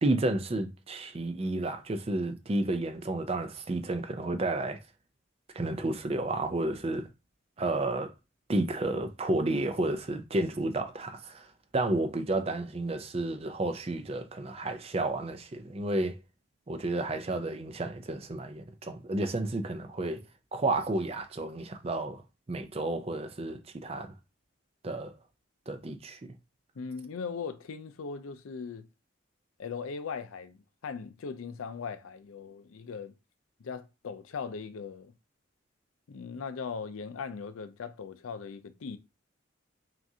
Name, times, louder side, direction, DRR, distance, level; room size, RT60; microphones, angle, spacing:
voice 1, 0.0-4.8 5.5-7.1 7.6-8.1 8.5-11.5 11.7-16.2 16.7-20.2 20.5-22.2 22.5-24.1 24.8-25.1 25.7-26.3, right 2 dB, 30° right, 0.4 m, -31 dB
voice 2, 26.8-28.9 29.6-33.1 33.6-35.1 36.1-39.0, left 5 dB, 90° left, 0.5 m, -39 dB
5.9 x 2.5 x 2.7 m
head